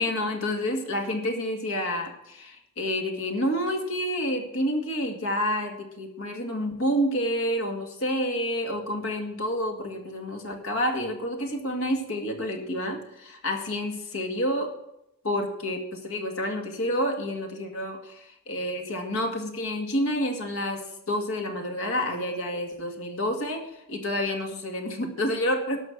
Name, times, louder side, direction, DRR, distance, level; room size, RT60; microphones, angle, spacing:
voice 1, 0.0-14.7 15.2-25.8, equal, 65° left, 3 dB, 2.2 m, -29 dB
13.0 x 5.8 x 7.4 m, 0.84 s
head